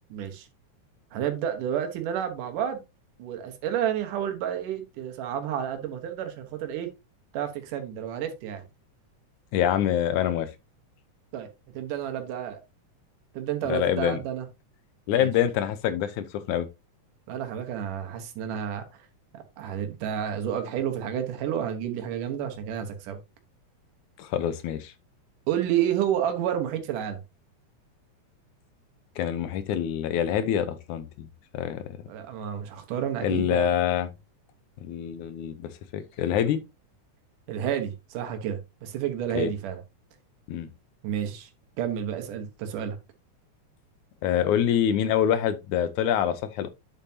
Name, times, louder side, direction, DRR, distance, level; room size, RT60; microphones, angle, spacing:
voice 1, 0.1-0.5 1.1-2.8 3.2-6.9 7.3-8.6 11.3-11.5 11.7-12.6 13.3-14.5 15.1-15.3 17.3-18.8 19.3-23.2 25.5-27.2 32.1-33.7 37.5-39.8 41.0-41.5 41.8-43.0, right 9 dB, 85° right, 2.8 m, -30 dB
voice 2, 9.5-10.5 13.7-14.2 15.1-16.7 24.2-24.9 29.2-31.3 31.5-31.8 33.2-34.1 34.8-36.6 39.4-39.5 40.5-40.7 44.2-46.7, left 10 dB, 75° left, 2.2 m, -26 dB
9.1 x 7.0 x 2.8 m
omnidirectional pair, 3.6 m